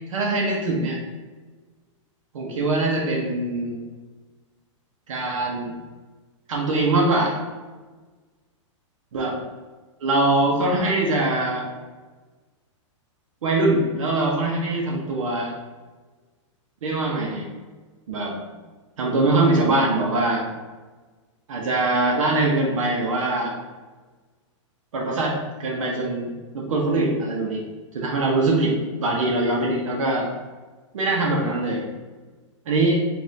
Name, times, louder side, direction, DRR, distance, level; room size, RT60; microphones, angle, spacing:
voice 1, 0.1-1.0 2.3-3.8 5.1-5.7 6.5-7.4 9.1-9.4 10.0-11.7 13.4-15.5 16.8-17.5 18.1-18.4 19.0-20.4 21.5-23.5 24.9-27.6 27.9-30.3 30.9-31.8 32.7-33.0, right 2 dB, 80° right, -2 dB, 0.8 m, -22 dB
5.0 x 2.6 x 2.7 m, 1.3 s
hypercardioid pair, 170°, 17 cm